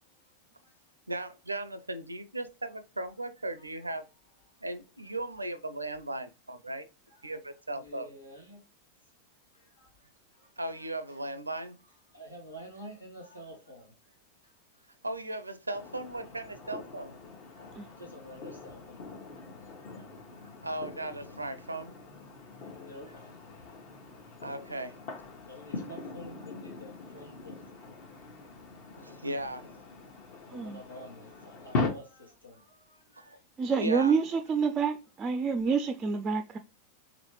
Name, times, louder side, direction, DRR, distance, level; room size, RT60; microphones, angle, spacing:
voice 1, 1.1-4.0 4.6-6.9 7.2-8.1 10.6-11.8 15.0-17.2 20.6-21.9 24.4-24.9 29.0-29.7 33.2-33.3 33.8-34.2, right 1 dB, 80° right, 0.4 m, -37 dB
voice 2, 7.7-8.6 9.5-10.5 10.8-11.2 12.1-14.1 14.4-14.5 17.3-19.0 19.3-20.0 22.6-23.4 23.8-24.4 25.5-27.7 29.2-29.3 30.5-33.4 35.6-35.7 36.5-36.6, equal, 85° left, 1.5 m, -50 dB
sound 1, 15.7-31.9, left 3 dB, 45° left, 1.1 m, -41 dB
voice 3, 33.6-36.6, right 5 dB, 20° right, 0.4 m, -28 dB
4.0 x 3.0 x 3.1 m
figure-of-eight pair, 90°, 0 cm